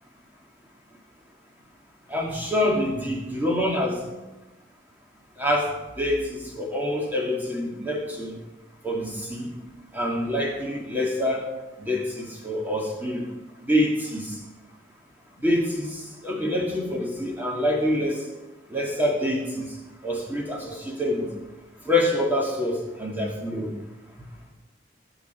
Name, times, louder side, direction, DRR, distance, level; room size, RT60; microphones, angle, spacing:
voice 1, 2.1-4.0 5.4-5.7 6.0-8.3 8.8-9.5 9.9-11.4 11.8-13.3 13.7-14.2 15.4-15.9 16.2-18.2 18.7-19.5 20.0-21.3 21.9-23.7, left 1 dB, 10° right, -1 dB, 2.5 m, -26 dB
20.0 x 7.9 x 4.6 m, 1.1 s
head